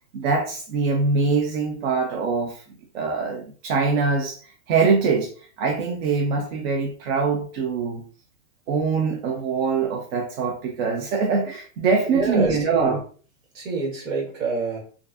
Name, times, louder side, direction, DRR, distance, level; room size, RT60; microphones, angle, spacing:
voice 1, 0.1-2.6 2.9-5.3 5.6-8.0 8.7-13.0, right 4 dB, 50° right, 0.5 m, -23 dB
voice 2, 12.1-13.0 13.5-14.8, right 4 dB, 70° right, 1.4 m, -26 dB
2.5 x 2.3 x 2.3 m
hypercardioid pair, 130°, 40 cm